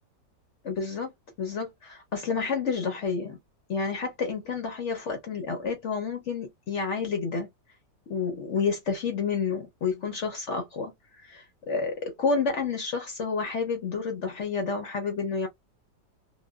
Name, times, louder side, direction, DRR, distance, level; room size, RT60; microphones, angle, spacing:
voice 1, 0.6-1.1 1.4-3.4 3.7-7.5 8.1-10.9 11.2-15.5, left 5 dB, 60° left, 0.8 m, -30 dB
3.0 x 2.1 x 2.2 m
omnidirectional pair, 1.9 m